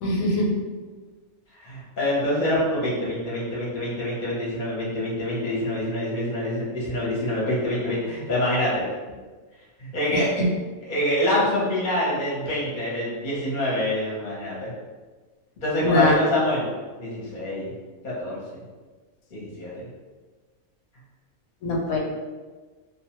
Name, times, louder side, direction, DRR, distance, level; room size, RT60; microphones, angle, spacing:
voice 1, 0.0-0.5 10.1-10.5 15.8-16.2 21.6-22.0, left 1 dB, 90° left, -1 dB, 1.0 m, -22 dB
voice 2, 1.5-8.8 9.8-10.3 10.8-14.7 15.6-16.7 17.0-17.7 18.0-18.6 19.3-19.9, left 1 dB, 45° left, -6 dB, 0.8 m, -26 dB
2.4 x 2.2 x 2.9 m, 1.4 s
omnidirectional pair, 1.4 m